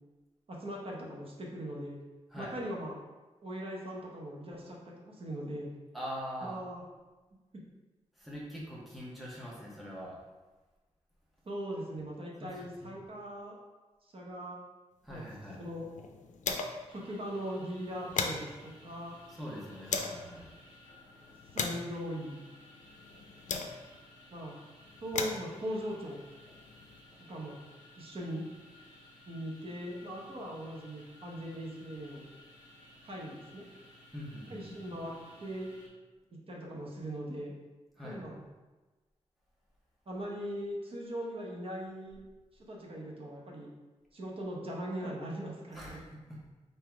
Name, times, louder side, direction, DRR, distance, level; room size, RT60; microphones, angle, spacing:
voice 1, 0.5-2.0 2.4-2.9 3.4-5.7 6.4-6.8 7.5-7.6 11.4-13.6 14.1-14.6 15.1-15.3 15.5-15.9 16.9-19.2 21.5-22.4 24.3-24.5 25.0-26.2 27.3-27.5 28.0-28.5 29.3-32.2 33.0-33.6 34.5-35.1 35.4-35.7 36.5-37.5 38.0-38.4 40.1-42.2 42.5-43.7 44.1-46.0, equal, 50° right, -2 dB, 0.9 m, -40 dB
voice 2, 5.9-6.6 8.1-10.2 12.5-12.9 15.0-15.6 19.3-20.5 34.1-35.0 38.0-38.2 45.7-46.5, equal, ahead, -6 dB, 0.9 m, -43 dB
light click, 15.2-17.0 17.3-17.4 17.7-20.3 20.9-24.1 24.8-27.0, left 5 dB, 85° left, 0.4 m, -39 dB
sound 1, 16.9-35.9, left 1 dB, 30° left, 1.1 m, -57 dB
3.7 x 2.7 x 4.5 m, 1.2 s
wide cardioid pair, 165°, 12 cm